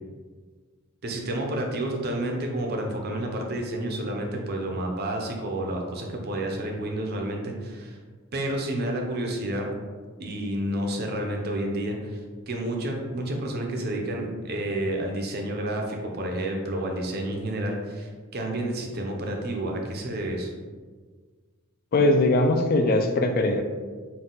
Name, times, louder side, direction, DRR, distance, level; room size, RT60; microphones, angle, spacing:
voice 1, 1.0-8.0 8.3-9.7 10.2-12.2 12.5-20.5, right 1 dB, 50° right, 1 dB, 0.6 m, -30 dB
voice 2, 21.9-23.6, left 2 dB, 45° left, 6 dB, 0.4 m, -21 dB
3.9 x 2.3 x 3.8 m, 1.5 s
head